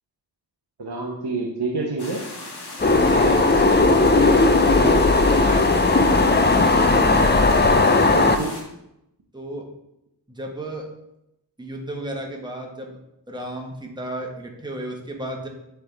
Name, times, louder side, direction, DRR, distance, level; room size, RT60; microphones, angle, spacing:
voice 1, 0.8-2.2 7.7-8.5, right 3 dB, 90° right, -2 dB, 1.0 m, -28 dB
sound 1, 2.0-8.6, left 2 dB, 75° left, 1.3 m, -37 dB
sound 2, 2.8-8.4, left 3 dB, 25° left, 0.6 m, -17 dB
voice 2, 3.0-3.4 3.8-6.3 9.3-9.7 10.3-10.9 11.6-13.0 13.3-15.5, right 1 dB, 10° right, 0 dB, 1.3 m, -33 dB
10.5 x 3.5 x 3.4 m, 0.84 s
wide cardioid pair, 45°, 39 cm